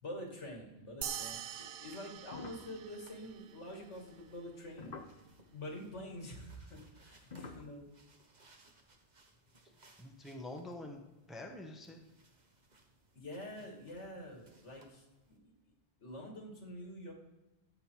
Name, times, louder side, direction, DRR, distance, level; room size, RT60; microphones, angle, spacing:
voice 1, 0.0-5.0 5.5-7.9 13.2-15.5 16.0-17.1, equal, 80° left, 1 dB, 2.4 m, -47 dB
sound 1, 1.0-3.8, right 9 dB, 60° right, 0.6 m, -44 dB
sound 2, 1.8-15.4, right 2 dB, 40° right, 1.2 m, -67 dB
sound 3, 2.2-5.5 6.5-7.6, left 4 dB, 45° left, 0.8 m, -49 dB
voice 2, 10.0-12.0, left 1 dB, ahead, 2 dB, 1.0 m, -46 dB
13.5 x 8.0 x 4.6 m, 1.0 s
omnidirectional pair, 1.2 m